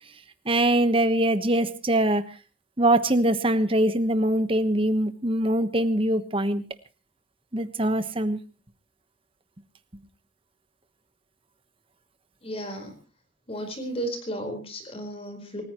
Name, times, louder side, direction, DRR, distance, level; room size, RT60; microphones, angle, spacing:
voice 1, 0.4-2.2 2.8-6.6 7.5-8.4, right 1 dB, 30° right, 11 dB, 1.2 m, -23 dB
voice 2, 12.4-13.0 13.5-15.6, right 1 dB, 30° left, 5 dB, 4.6 m, -34 dB
28.5 x 14.5 x 3.1 m, 0.32 s
head